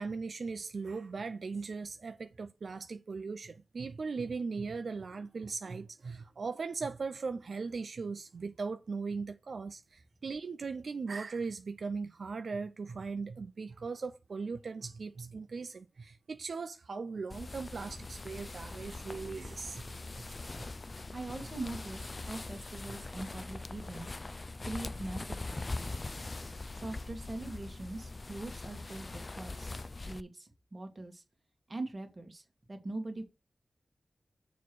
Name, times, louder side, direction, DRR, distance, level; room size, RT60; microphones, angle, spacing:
voice 1, 0.0-19.9 20.6-20.7 22.9-23.0, right 4 dB, 75° right, 0.5 m, -39 dB
sound 1, 17.3-30.2, left 3 dB, 40° left, 0.3 m, -42 dB
voice 2, 21.1-24.2 24.6-26.2 26.8-29.8 30.0-31.2 31.7-32.4 32.7-33.2, right 2 dB, 35° right, 1.8 m, -42 dB
7.0 x 3.1 x 6.1 m
wide cardioid pair, 90°, 0 cm